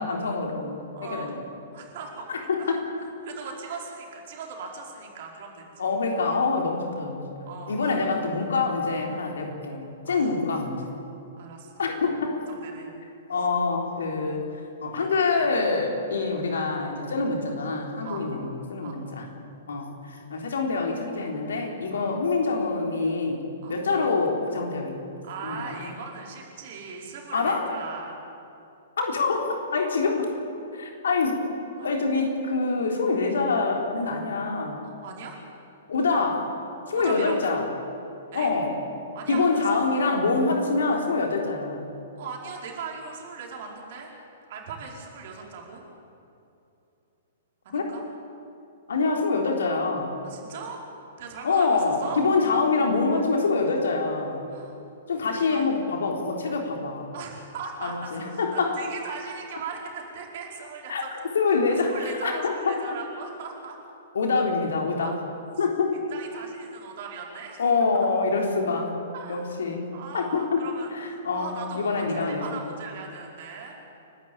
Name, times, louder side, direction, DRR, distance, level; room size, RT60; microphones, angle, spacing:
voice 1, 0.0-1.4 2.3-2.9 5.8-11.0 11.8-12.3 13.3-14.5 14.8-19.3 19.7-23.4 23.7-25.0 25.4-25.9 27.3-27.7 29.0-30.3 30.7-31.5 31.8-34.9 35.9-36.5 36.9-37.7 38.3-38.7 39.3-41.9 47.7-47.8 48.9-50.1 51.4-54.4 55.1-57.1 57.8-58.8 60.9-61.0 61.3-62.8 64.1-65.1 65.6-66.0 67.6-68.9 69.3-72.6, left 4 dB, 60° left, 2 dB, 3.7 m, -25 dB
voice 2, 0.9-1.4 1.7-2.3 2.6-2.7 3.2-5.9 7.5-8.0 10.1-10.3 11.4-12.0 12.5-12.9 18.0-18.3 18.8-19.0 22.0-22.1 23.6-23.8 25.2-28.1 31.8-31.9 34.8-35.4 36.9-37.5 38.3-38.5 39.1-39.6 42.1-44.1 44.5-45.8 47.6-48.0 50.2-50.8 51.2-52.2 54.5-54.8 55.3-55.7 57.1-61.1 61.8-63.8 65.0-65.2 66.1-67.6 68.0-68.1 69.1-69.5 69.9-70.9 71.3-73.8, right 5 dB, 45° right, 0 dB, 4.9 m, -39 dB
30.0 x 12.5 x 8.8 m, 2.8 s
figure-of-eight pair, 110°, 0 cm